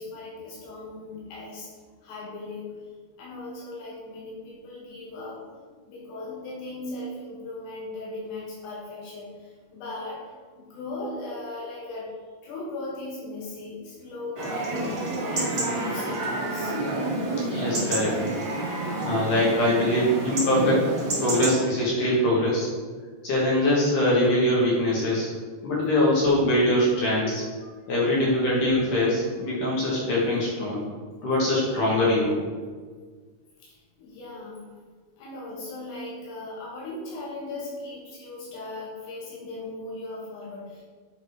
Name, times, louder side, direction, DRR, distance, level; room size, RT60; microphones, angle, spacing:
voice 1, 0.0-1.7 2.0-2.9 3.2-10.2 10.6-12.1 12.4-16.7 27.6-27.9 33.6-34.6 35.2-40.8, left 2 dB, 80° left, -5 dB, 3.3 m, -38 dB
Chatter / Livestock farm animals working animals / Chirp tweet, 14.3-21.5, right 2 dB, 70° right, 0.9 m, -28 dB
voice 2, 17.5-18.2 18.6-22.7 23.2-25.3 25.6-27.4 27.9-30.8 31.2-32.4, left 1 dB, 60° left, -5 dB, 2.5 m, -23 dB
8.0 x 4.1 x 4.7 m, 1.5 s
omnidirectional pair, 4.8 m